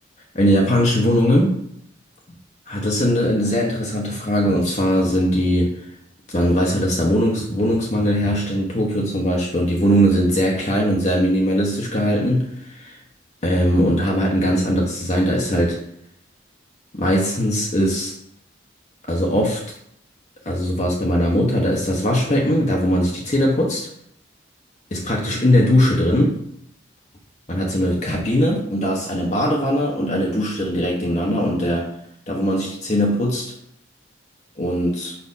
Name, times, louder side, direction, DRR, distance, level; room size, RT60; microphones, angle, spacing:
voice 1, 0.4-1.6 2.7-5.8 6.3-13.0 13.4-15.8 16.9-18.1 19.1-19.6 20.4-23.9 24.9-26.4 27.5-31.9 32.3-33.5 34.6-35.2, equal, 35° left, -2 dB, 1.0 m, -20 dB
5.6 x 4.3 x 5.5 m, 0.70 s
head